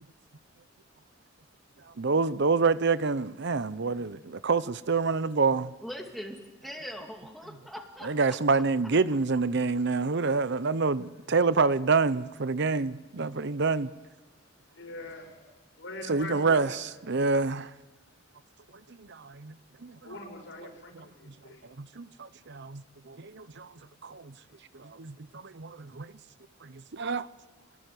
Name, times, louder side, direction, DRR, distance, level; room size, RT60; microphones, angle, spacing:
voice 1, 2.0-5.7 8.0-13.9 16.1-17.7 19.1-19.5 19.8-20.0 21.0-21.1 21.8-22.8 23.1-23.7 24.0-24.3 24.8-26.1 26.6-27.3, right 4 dB, 60° right, 0.8 m, -27 dB
voice 2, 5.8-8.6, equal, ahead, 2.5 m, -42 dB
voice 3, 14.7-15.5 15.8-17.0 20.0-21.6, left 2 dB, 70° left, 6.6 m, -43 dB
26.0 x 20.0 x 9.5 m
head